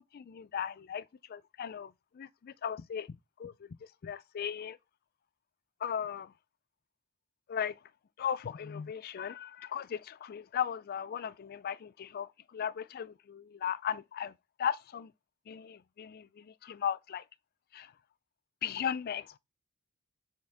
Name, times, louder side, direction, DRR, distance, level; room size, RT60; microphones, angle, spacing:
voice 1, 0.1-1.0 1.3-3.5 4.0-4.8 5.8-6.3 7.5-7.7 8.2-14.3 14.6-15.1 15.5-17.2 17.7-17.9 18.6-19.4, left 8 dB, 45° left, 0.3 m, -37 dB
7.7 x 4.4 x 3.5 m
head